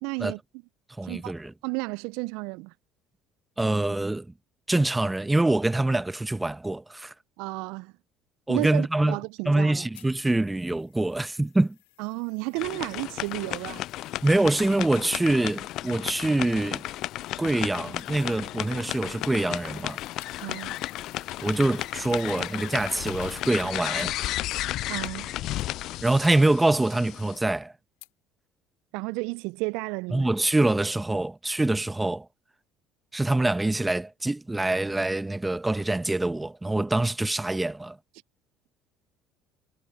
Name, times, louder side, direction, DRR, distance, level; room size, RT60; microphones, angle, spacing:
voice 1, 0.0-0.4 1.0-1.3 1.6-2.7 7.4-7.9 8.5-9.9 12.0-13.8 20.4-20.8 24.9-25.3 28.9-30.3, right 27 dB, 70° right, 0.4 m, -32 dB
voice 2, 1.0-1.5 3.6-4.3 4.7-7.1 8.5-9.2 9.5-11.8 14.2-16.9 17.4-20.0 21.4-24.1 26.0-27.7 30.1-32.3 33.1-38.0, right 2 dB, 10° right, 1.0 m, -25 dB
sound 1, 9.9-24.1 24.5-24.6 25.1-25.2 25.6-25.7 26.2-26.3 26.9-27.0 27.4-27.5 28.0-28.1, left 22 dB, 80° left, 3.2 m, -55 dB
sound 2, 12.5-27.4, left 15 dB, 60° left, 0.3 m, -34 dB
hypercardioid pair, 65°, 0 cm